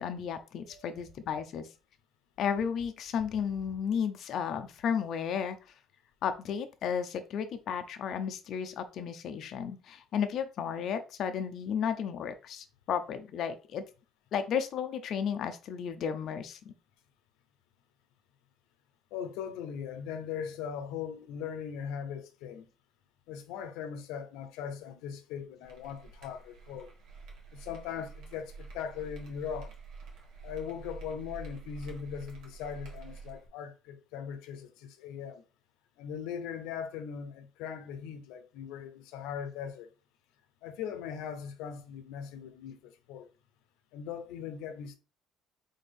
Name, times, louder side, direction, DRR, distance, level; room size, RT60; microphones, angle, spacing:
voice 1, 0.0-1.7 2.4-5.6 6.2-13.8 14.3-16.7, left 7 dB, 50° left, 0.6 m, -33 dB
voice 2, 19.1-22.7 23.3-26.9 27.5-29.8 30.4-35.4 36.0-39.9 40.6-43.3 43.9-44.9, left 7 dB, 85° left, 0.8 m, -40 dB
sound 1, 25.6-33.5, right 4 dB, 70° right, 1.6 m, -48 dB
4.2 x 3.6 x 3.5 m
cardioid pair, 140°, 0 cm